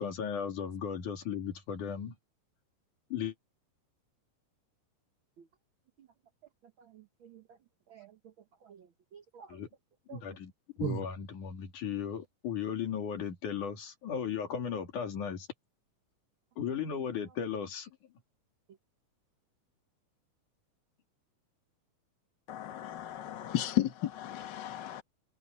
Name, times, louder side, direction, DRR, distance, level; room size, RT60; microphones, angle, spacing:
voice 1, 0.0-2.1 3.1-3.3 9.5-9.7 10.1-10.5 10.8-15.5 16.6-17.9, left 7 dB, 70° left, 4.0 m, -36 dB
voice 2, 6.8-7.6 7.9-8.3 8.6-9.6 10.1-10.2 10.8-11.1, right 9 dB, 75° right, 1.1 m, -42 dB
voice 3, 22.5-25.0, left 13 dB, 45° left, 1.6 m, -34 dB
omnidirectional pair, 3.8 m